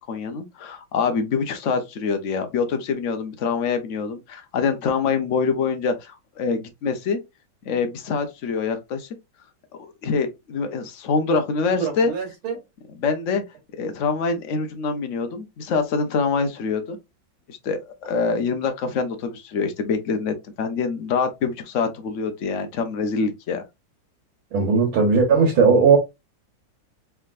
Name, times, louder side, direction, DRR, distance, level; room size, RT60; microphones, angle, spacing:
voice 1, 0.1-7.2 7.6-9.1 9.7-12.1 12.9-13.4 13.8-17.0 17.5-23.6, left 5 dB, 60° left, 0.7 m, -25 dB
voice 2, 11.8-12.5 24.5-26.0, right 5 dB, 85° right, 1.9 m, -18 dB
4.6 x 3.5 x 2.5 m
omnidirectional pair, 2.2 m